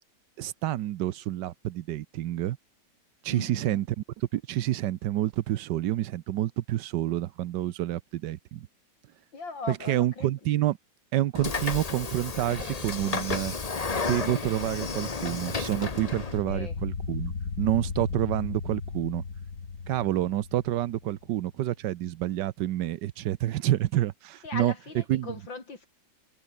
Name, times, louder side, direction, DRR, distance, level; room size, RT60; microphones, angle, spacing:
voice 1, 0.4-2.6 3.2-8.7 9.7-10.8 11.1-13.5 13.9-17.3 17.6-19.2 19.9-24.7 25.1-25.4, right 13 dB, 70° right, 1.3 m, -28 dB
voice 2, 3.3-3.8 9.3-10.3 16.4-16.8 24.4-25.9, left 4 dB, 75° left, 5.0 m, -39 dB
Train / Sliding door, 11.3-16.4, left 4 dB, 25° left, 0.9 m, -32 dB
sound 1, 16.1-21.2, left 5 dB, 55° left, 2.9 m, -36 dB
omnidirectional pair, 2.1 m